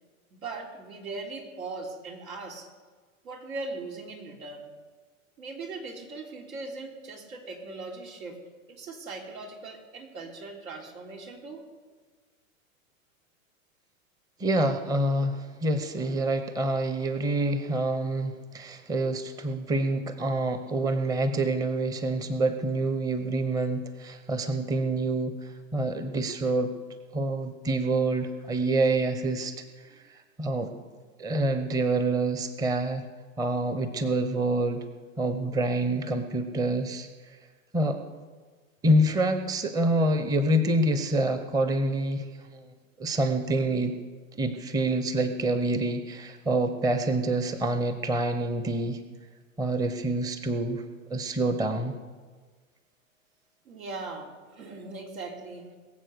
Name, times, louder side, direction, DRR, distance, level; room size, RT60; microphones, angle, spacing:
voice 1, 0.3-2.7 3.2-4.7 5.4-8.4 8.7-11.7 19.5-19.6 53.6-55.8, right 3 dB, 80° right, 1 dB, 3.4 m, -39 dB
voice 2, 14.4-26.7 27.1-29.6 30.4-30.7 31.2-33.0 33.4-34.9 35.2-37.1 37.7-38.0 38.8-42.7 43.0-44.0 44.4-49.0 49.6-50.8 51.1-51.9, right 2 dB, 10° right, 9 dB, 0.7 m, -27 dB
21.5 x 7.5 x 6.6 m, 1.4 s
hypercardioid pair, 125°, 40 cm